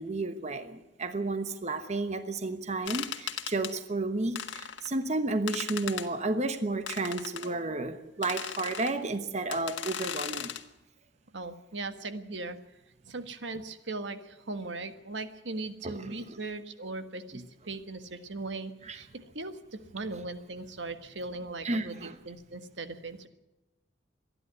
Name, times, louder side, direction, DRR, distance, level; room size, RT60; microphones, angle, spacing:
voice 1, 0.0-10.5 15.8-16.4 17.3-17.4 18.8-19.0 21.6-22.2, right 2 dB, 40° right, 9 dB, 1.1 m, -32 dB
sound 1, 2.9-3.7 4.4-4.9 5.5-6.1 6.9-7.5 8.2-8.9 9.5-10.6, left 8 dB, 80° left, 1.6 m, -37 dB
voice 2, 11.3-12.6 13.0-23.3, right 3 dB, 75° right, 9 dB, 1.6 m, -39 dB
26.5 x 11.0 x 9.6 m, 0.96 s
head